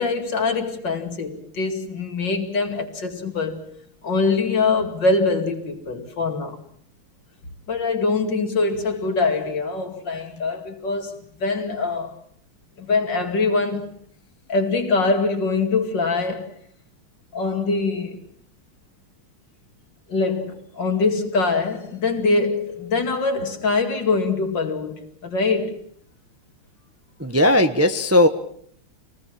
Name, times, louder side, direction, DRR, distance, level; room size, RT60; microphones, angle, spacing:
voice 1, 0.0-3.7 4.0-6.6 7.7-12.1 12.8-13.9 14.5-16.6 17.3-18.2 20.1-25.8, left 3 dB, 60° left, 3.0 m, -23 dB
voice 2, 27.2-28.3, left 1 dB, 10° right, 0.7 m, -17 dB
26.5 x 19.5 x 7.4 m
omnidirectional pair, 2.3 m